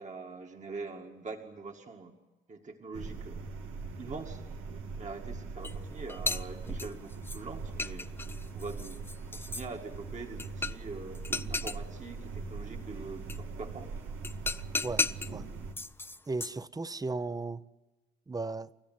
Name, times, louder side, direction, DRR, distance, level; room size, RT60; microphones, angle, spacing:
voice 1, 0.0-2.1 2.5-3.4 4.0-4.4 5.0-8.1 8.5-9.0 9.3-11.2 11.5-13.9, right 4 dB, 35° right, 2.0 m, -43 dB
sound 1, 2.9-15.7, right 4 dB, 85° right, 2.1 m, -41 dB
sound 2, 5.6-5.7 6.1-7.4 7.8-9.7 10.4-10.9 11.1-11.8 13.3-13.4 14.2-15.3 15.8-16.6, left 3 dB, 10° left, 0.7 m, -34 dB
voice 2, 16.3-17.6 18.3-18.7, right 3 dB, 20° right, 0.8 m, -35 dB
29.5 x 13.5 x 9.5 m
cardioid pair, 90°, 20 cm